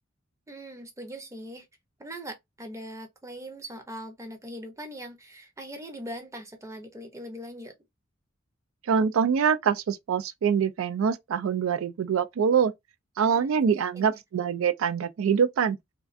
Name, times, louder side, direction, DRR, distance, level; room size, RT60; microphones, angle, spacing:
voice 1, 0.5-1.7 2.0-7.7 13.2-13.6 13.9-14.2, equal, 15° right, 0.6 m, -41 dB
voice 2, 8.9-12.7 13.2-15.8, right 7 dB, 75° right, 0.4 m, -24 dB
2.3 x 2.3 x 2.4 m
head